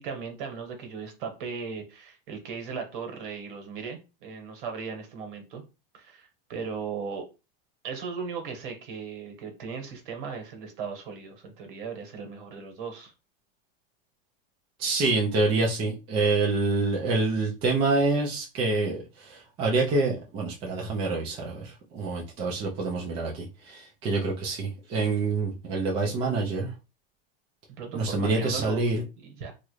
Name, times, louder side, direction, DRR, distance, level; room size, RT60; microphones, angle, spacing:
voice 1, 0.0-5.6 5.9-7.2 7.8-13.1 27.8-28.8 29.2-29.5, right 5 dB, 60° right, 1.3 m, -37 dB
voice 2, 14.8-26.7 27.9-29.0, right 3 dB, 20° right, 0.4 m, -27 dB
3.0 x 2.5 x 3.1 m
supercardioid pair, 155°, 30 cm